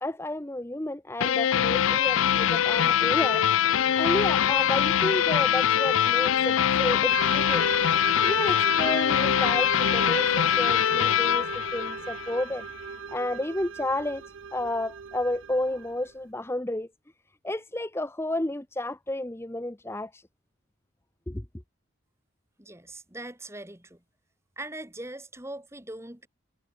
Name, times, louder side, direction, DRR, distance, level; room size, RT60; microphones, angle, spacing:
voice 1, 0.0-7.7 8.2-12.6 13.1-14.2 14.5-16.9 17.4-20.2 21.3-21.4, left 1 dB, 10° left, 0.8 m, -31 dB
sound 1, 1.2-12.5, left 9 dB, 70° left, 0.4 m, -23 dB
sound 2, 7.1-16.1, right 6 dB, 65° right, 0.5 m, -37 dB
voice 2, 22.6-24.0 24.6-26.3, right 1 dB, 15° right, 2.3 m, -41 dB
head